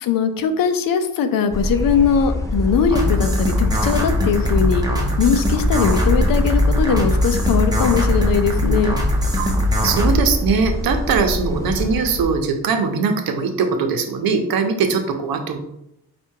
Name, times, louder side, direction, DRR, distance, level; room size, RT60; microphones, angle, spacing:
voice 1, 0.0-4.9 5.2-9.0, left 7 dB, 65° left, 9 dB, 0.6 m, -20 dB
sound 1, 1.5-12.2, equal, 10° left, 0.5 m, -24 dB
sound 2, 2.9-10.1, left 1 dB, 10° right, 1.0 m, -21 dB
voice 2, 9.8-15.6, right 5 dB, 70° right, 5 dB, 0.8 m, -21 dB
4.7 x 2.5 x 4.5 m, 0.81 s
cardioid pair, 105°, 37 cm